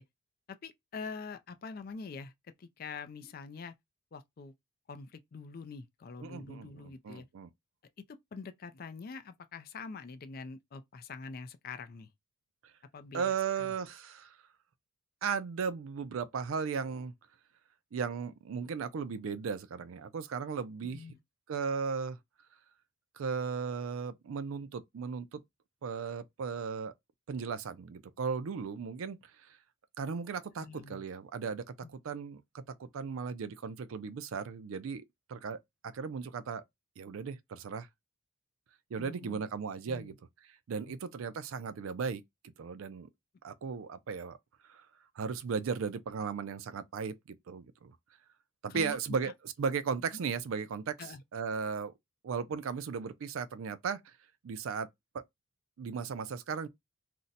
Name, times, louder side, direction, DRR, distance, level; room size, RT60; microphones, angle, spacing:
voice 1, 0.5-2.3 2.6-3.7 4.1-4.5 4.9-7.3 8.3-12.1 12.9-13.7 20.8-21.2 30.6-31.0 31.8-31.9 38.9-39.4 39.9-40.2 40.8-41.0 48.7-49.0 51.0-51.2, left 4 dB, 45° left, 0.3 m, -45 dB
voice 2, 6.2-7.5 13.1-14.4 15.2-17.1 17.9-21.0 21.5-22.2 23.2-25.4 25.8-26.9 27.3-29.6 30.0-35.0 35.3-36.6 37.0-37.9 38.9-40.1 40.7-42.2 42.6-43.1 43.4-44.4 44.6-44.9 45.2-48.0 48.6-49.3 49.6-51.0 51.3-51.9 52.2-54.1 54.4-54.9 55.1-55.2 55.8-56.7, right 6 dB, 75° right, 0.4 m, -36 dB
2.6 x 2.1 x 3.9 m
head